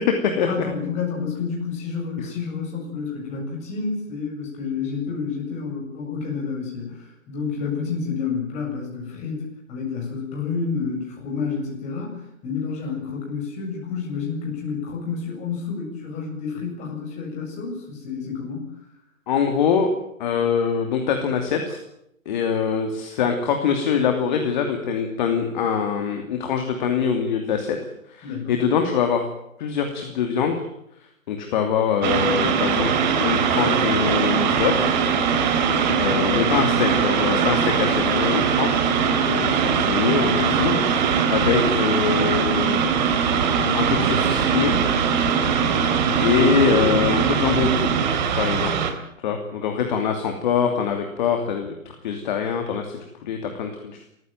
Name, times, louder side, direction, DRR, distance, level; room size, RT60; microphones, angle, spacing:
voice 1, 0.4-18.7 28.2-28.6 35.8-36.3, left 5 dB, 15° left, 0 dB, 7.8 m, -29 dB
voice 2, 19.3-19.9 20.2-21.8 22.3-27.8 28.1-29.2 29.6-30.7 31.3-34.9 36.0-43.2 43.6-44.7 46.2-47.9 48.4-48.8 49.2-51.7 52.0-54.0, left 7 dB, 35° left, 4 dB, 2.8 m, -24 dB
sound 1, 32.0-48.9, right 7 dB, 35° right, 3.2 m, -22 dB
sound 2, 32.0-48.0, right 4 dB, 70° right, 5.7 m, -27 dB
29.0 x 15.0 x 9.1 m, 0.77 s
hypercardioid pair, 150°, 40 cm